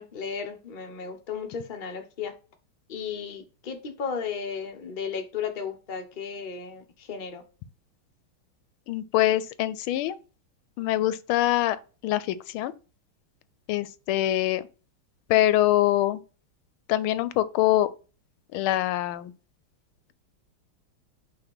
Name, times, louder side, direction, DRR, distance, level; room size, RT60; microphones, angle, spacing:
voice 1, 0.0-2.4 2.9-7.4, left 6 dB, 35° left, 0.8 m, -34 dB
voice 2, 8.9-10.2 10.8-11.8 12.0-12.7 13.7-14.6 15.3-16.2 16.9-17.9 18.5-19.3, left 14 dB, 85° left, 1.4 m, -24 dB
5.7 x 3.5 x 5.4 m
omnidirectional pair, 2.3 m